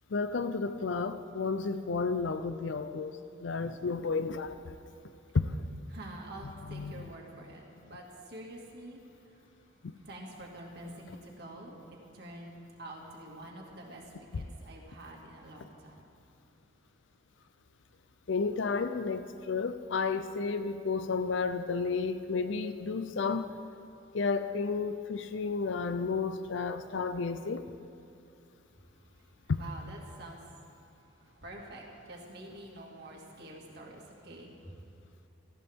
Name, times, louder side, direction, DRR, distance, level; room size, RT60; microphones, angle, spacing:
voice 1, 0.1-4.6 5.3-5.7 6.7-7.0 9.8-9.9 18.3-23.5 24.1-27.7 29.5-29.6, left 4 dB, 65° left, 10 dB, 0.5 m, -32 dB
voice 2, 5.0-5.4 5.9-9.4 9.8-16.0 28.9-34.8, right 1 dB, 50° right, -1 dB, 2.1 m, -48 dB
19.0 x 14.0 x 3.6 m, 2.6 s
head